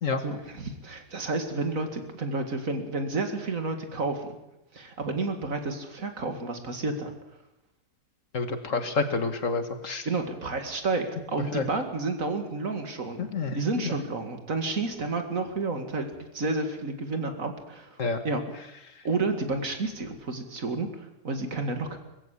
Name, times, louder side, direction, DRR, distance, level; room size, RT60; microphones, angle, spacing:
voice 1, 0.2-4.3 4.7-7.1 10.1-13.2 13.5-18.4 19.0-22.0, right 3 dB, 55° right, 6 dB, 2.6 m, -30 dB
voice 2, 8.3-10.1 11.5-11.7 13.2-13.6 13.8-13.9 18.0-18.2, left 4 dB, 55° left, 9 dB, 1.8 m, -28 dB
21.0 x 15.5 x 8.5 m, 0.91 s
omnidirectional pair, 1.7 m